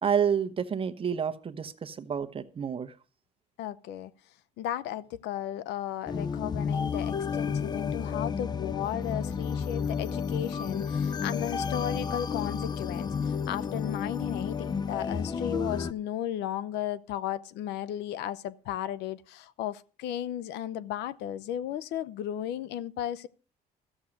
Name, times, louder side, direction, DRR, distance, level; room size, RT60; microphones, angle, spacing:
voice 1, 0.0-2.9, right 7 dB, 30° right, 1.0 m, -29 dB
voice 2, 3.6-4.1 4.6-23.3, left 11 dB, 85° left, 0.7 m, -35 dB
sound 1, 6.1-15.9, left 6 dB, 25° left, 0.5 m, -31 dB
13.5 x 7.2 x 6.4 m
cardioid pair, 110°, 17 cm